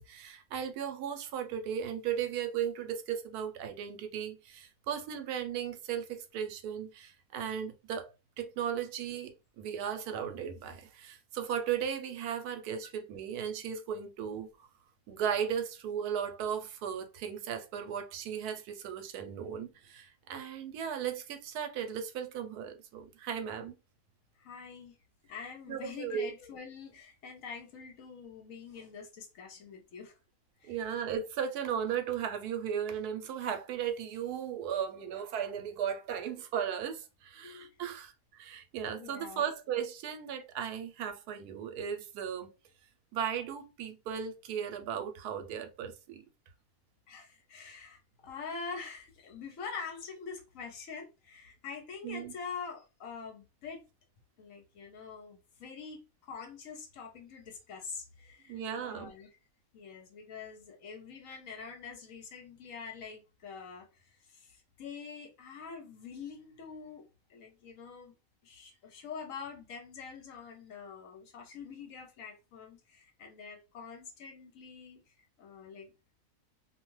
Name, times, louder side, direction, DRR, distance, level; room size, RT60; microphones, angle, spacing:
voice 1, 0.0-8.1 8.4-14.5 15.1-23.7 25.7-26.3 30.7-42.5 43.1-46.2 52.0-52.3 58.5-59.1, right 8 dB, 80° right, 1.1 m, -36 dB
voice 2, 24.4-25.0 25.3-30.1 30.6-30.8 37.4-37.8 39.0-39.4 47.1-53.8 54.4-59.3 59.7-68.1 68.4-75.9, left 5 dB, 65° left, 1.0 m, -45 dB
2.5 x 2.3 x 3.0 m
omnidirectional pair, 1.6 m